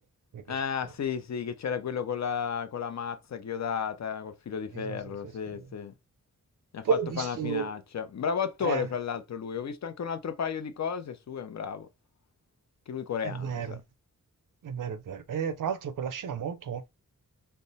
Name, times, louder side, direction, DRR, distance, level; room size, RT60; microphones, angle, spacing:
voice 1, 0.5-5.9 6.7-6.8 7.2-11.9 12.9-13.8, left 7 dB, 55° left, 0.7 m, -33 dB
voice 2, 4.7-5.6 6.8-7.7 8.6-8.9 13.2-13.8 14.6-16.9, right 7 dB, 80° right, 0.7 m, -33 dB
3.4 x 2.0 x 4.0 m
wide cardioid pair, 115°, 32 cm